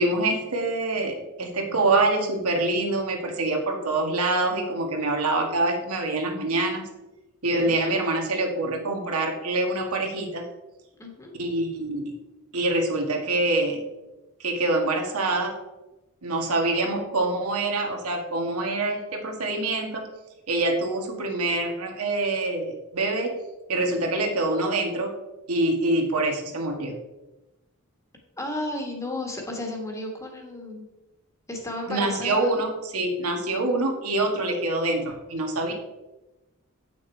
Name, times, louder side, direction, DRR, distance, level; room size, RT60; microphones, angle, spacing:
voice 1, 0.0-6.9 7.4-10.4 11.4-12.1 12.5-13.8 14.4-15.5 16.2-20.1 20.5-23.3 23.7-25.1 25.5-26.9 31.9-35.7, right 2 dB, 85° right, 2 dB, 1.6 m, -25 dB
voice 2, 11.0-11.3 28.4-30.9 31.5-32.6, left 1 dB, 15° left, 1 dB, 1.3 m, -33 dB
8.3 x 6.2 x 4.5 m, 1.0 s
head